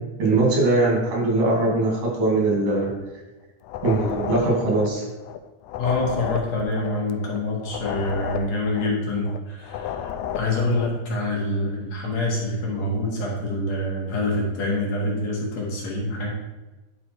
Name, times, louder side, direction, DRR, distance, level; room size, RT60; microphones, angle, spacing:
voice 1, 0.2-2.9 3.8-5.0, right 2 dB, 90° right, -2 dB, 3.8 m, -21 dB
sound 1, 3.6-5.4 5.6-9.4 9.6-11.0, left 9 dB, 80° left, 1.8 m, -32 dB
voice 2, 5.8-16.3, left 2 dB, 60° left, -3 dB, 2.8 m, -26 dB
10.5 x 4.1 x 4.5 m, 1.1 s
omnidirectional pair, 3.6 m